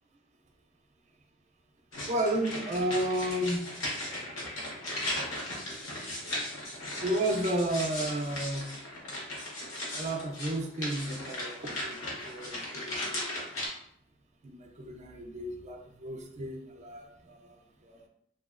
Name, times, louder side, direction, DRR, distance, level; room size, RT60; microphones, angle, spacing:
sound 1, 1.9-13.7, left 1 dB, 75° left, 0.9 m, -37 dB
voice 1, 2.1-3.7 7.0-8.7 10.0-12.0 12.3-13.4 14.4-18.1, right 1 dB, 35° right, 3 dB, 0.4 m, -32 dB
2.9 x 2.7 x 2.4 m, 0.71 s
head